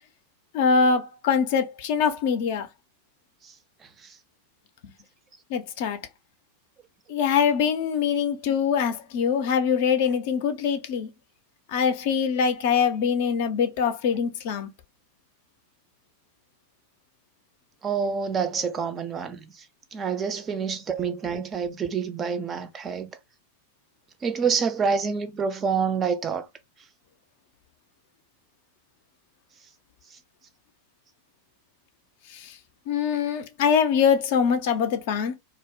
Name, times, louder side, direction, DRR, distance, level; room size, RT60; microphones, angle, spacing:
voice 1, 0.5-2.7 5.5-6.0 7.1-11.1 11.7-14.7 32.9-35.3, left 6 dB, 50° left, 0.4 m, -23 dB
voice 2, 17.8-19.4 19.9-23.1 24.2-26.4, right 6 dB, 25° right, 0.4 m, -27 dB
2.4 x 2.0 x 3.2 m
figure-of-eight pair, 90°, 0 cm